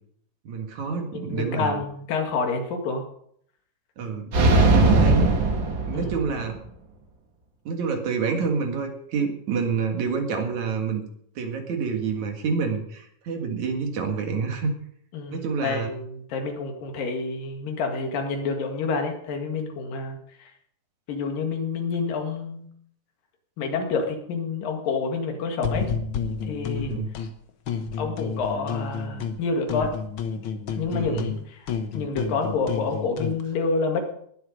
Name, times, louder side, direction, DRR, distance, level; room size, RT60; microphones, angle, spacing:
voice 1, 0.4-1.8 4.0-5.4 5.9-6.6 7.6-11.0 11.4-14.7 15.3-15.9 26.7-27.1 31.0-31.3, right 5 dB, 60° right, 4 dB, 3.1 m, -28 dB
voice 2, 1.1-3.0 5.9-6.2 15.1-20.2 21.1-22.7 23.6-25.9 26.5-26.9 28.0-29.9 30.8-31.7 31.9-34.1, left 4 dB, 80° left, 3 dB, 3.7 m, -28 dB
sound 1, 4.3-6.5, right 2 dB, 40° right, 2.1 m, -19 dB
sound 2, 25.6-27.3 27.7-29.4 29.7-33.4, left 6 dB, 65° left, 1.2 m, -30 dB
20.0 x 7.9 x 5.1 m, 0.67 s
omnidirectional pair, 3.9 m